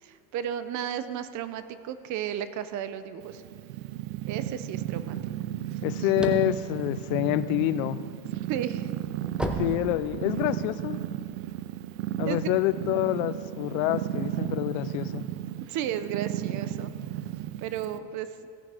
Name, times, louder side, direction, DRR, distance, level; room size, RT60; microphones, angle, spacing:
voice 1, 0.0-3.4 4.3-5.2 5.7-5.8 8.3-8.9 12.2-12.5 15.7-16.9 17.6-18.3, right 10 dB, 45° right, 12 dB, 0.7 m, -33 dB
Purr, 3.2-18.0, right 13 dB, 85° right, 0.6 m, -34 dB
voice 2, 5.8-8.0 9.6-11.0 12.2-15.3, left 15 dB, 80° left, 15 dB, 0.5 m, -27 dB
sound 1, 6.0-7.9 8.4-10.6, equal, ahead, 0.7 m, -34 dB
16.5 x 6.0 x 4.9 m, 2.3 s
supercardioid pair, 125°, 39 cm